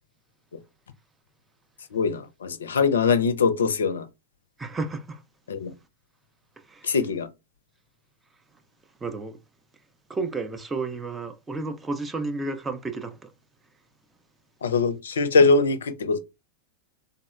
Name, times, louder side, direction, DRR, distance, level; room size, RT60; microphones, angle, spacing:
voice 1, 1.9-4.1 5.5-5.7 6.8-7.3 14.6-16.2, left 4 dB, 65° left, 0.4 m, -22 dB
voice 2, 4.6-5.2 6.7-6.9 9.0-9.4 10.1-13.3, right 3 dB, 15° right, 0.4 m, -32 dB
3.5 x 2.0 x 2.2 m
figure-of-eight pair, 90°, 0 cm